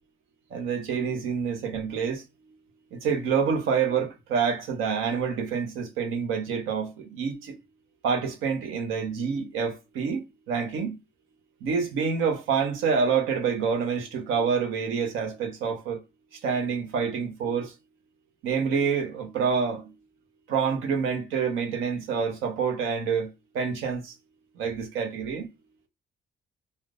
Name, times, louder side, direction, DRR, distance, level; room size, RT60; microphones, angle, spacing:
voice 1, 0.5-2.2 2.9-7.5 8.0-10.9 11.6-16.0 16.4-17.7 18.4-19.9 20.5-23.3 23.5-24.1 24.6-25.5, right 6 dB, 90° right, 0.7 m, -27 dB
3.3 x 2.0 x 2.3 m
cardioid pair, 90°, 20 cm